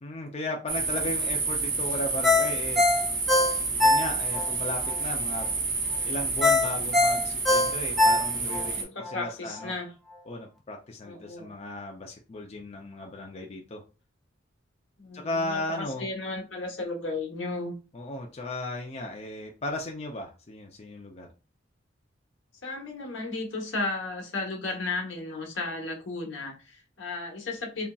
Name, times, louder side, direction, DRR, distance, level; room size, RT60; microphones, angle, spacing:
voice 1, 0.0-2.8 3.8-5.5 6.0-8.8 9.1-9.7 10.3-13.8 15.1-16.1 17.9-21.3, left 2 dB, 35° left, 0.5 m, -35 dB
sound 1, 0.7-8.8, right 4 dB, 50° right, 1.5 m, -29 dB
Ringtone, 2.2-4.5 4.9-5.0 6.4-8.7 9.1-9.2, left 2 dB, ahead, 0.9 m, -22 dB
voice 2, 8.7-9.9 11.0-11.5 15.0-17.7 22.6-27.9, left 3 dB, 70° left, 1.1 m, -34 dB
4.0 x 3.4 x 2.3 m
head